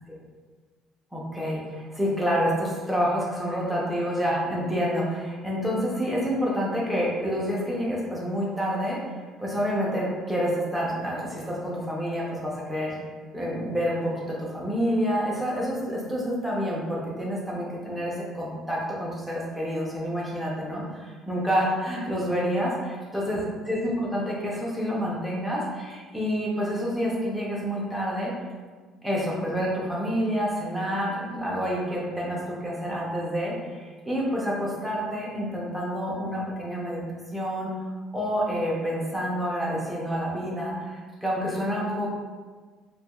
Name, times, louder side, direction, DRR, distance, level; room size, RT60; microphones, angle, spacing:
voice 1, 1.1-9.0 9.4-13.0 13.3-22.7 23.1-28.3 29.0-37.0 37.3-37.7 38.1-42.1, equal, ahead, -5 dB, 0.5 m, -28 dB
2.6 x 2.2 x 2.8 m, 1.4 s
cardioid pair, 175°, 0 cm